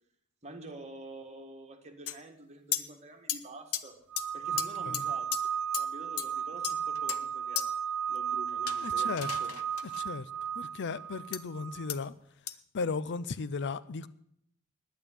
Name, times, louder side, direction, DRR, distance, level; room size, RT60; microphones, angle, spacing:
voice 1, 0.4-4.0 4.3-5.4 5.8-7.7 8.1-9.5, right 2 dB, 30° right, 4 dB, 1.9 m, -47 dB
sound 1, 2.1-2.2 2.7-2.8 3.3-3.4 3.7-3.8 4.2-4.3 4.6-4.7 4.9-5.0 5.3-5.4 5.7-5.8 6.2-6.3 6.6-7.2 7.6-7.7 8.7-10.0 11.3-11.4 11.9-12.0 12.5-12.6, left 11 dB, 70° left, 0.8 m, -34 dB
sound 2, 4.1-11.9, right 8 dB, 70° right, 0.6 m, -34 dB
voice 2, 8.8-9.3 10.0-10.3 10.6-12.1 12.7-14.1, left 4 dB, 50° left, 17 dB, 0.5 m, -35 dB
10.5 x 9.0 x 10.0 m, 0.69 s
head